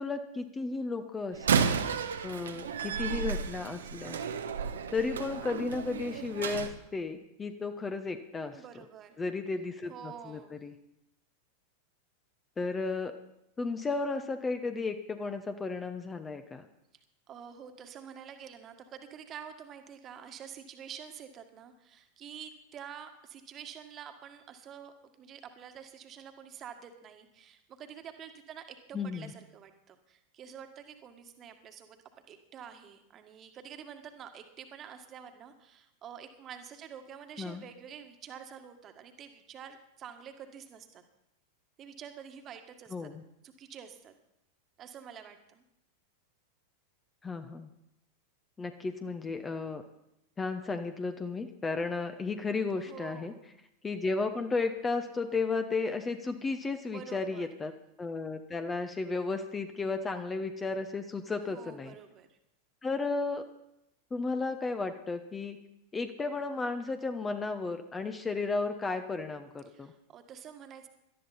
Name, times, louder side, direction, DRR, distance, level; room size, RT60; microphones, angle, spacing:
voice 1, 0.0-1.8 2.2-4.2 4.9-8.6 9.2-10.7 12.6-13.1 13.6-16.7 28.9-29.3 37.4-37.6 42.9-43.2 47.2-47.7 48.6-49.8 50.4-53.3 53.8-57.7 58.0-61.9 62.8-63.5 64.1-65.6 65.9-69.9, left 3 dB, 15° left, 8 dB, 1.0 m, -34 dB
Slam, 1.3-6.7, right 6 dB, 65° right, 1.1 m, -32 dB
voice 2, 8.5-9.2 9.9-10.6 17.3-32.0 32.3-41.0 41.8-43.1 43.4-44.1 44.8-45.6 52.9-53.4 56.8-57.5 61.5-62.4 69.7-70.9, right 8 dB, 30° right, 6 dB, 1.7 m, -48 dB
18.0 x 12.5 x 4.3 m, 0.82 s
figure-of-eight pair, 90°, 0 cm